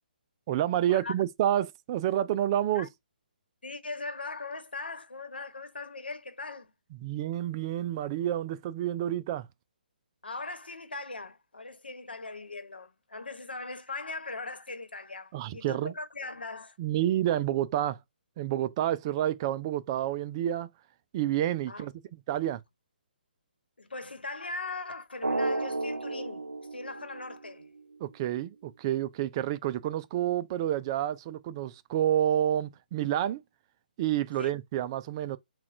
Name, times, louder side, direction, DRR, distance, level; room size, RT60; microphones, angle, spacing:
voice 1, 0.5-2.9 7.0-9.5 15.3-15.9 16.8-18.0 18.4-20.7 21.1-21.9 22.3-22.6 28.0-33.4 34.0-35.4, right 12 dB, 30° right, 0.3 m, -29 dB
voice 2, 3.6-6.7 10.2-16.8 21.7-21.9 23.8-26.5 26.7-27.7 34.4-34.5, left 3 dB, 80° left, 1.0 m, -40 dB
Drum, 25.2-27.8, right 2 dB, 85° right, 0.5 m, -33 dB
5.7 x 2.3 x 2.6 m
figure-of-eight pair, 135°, 5 cm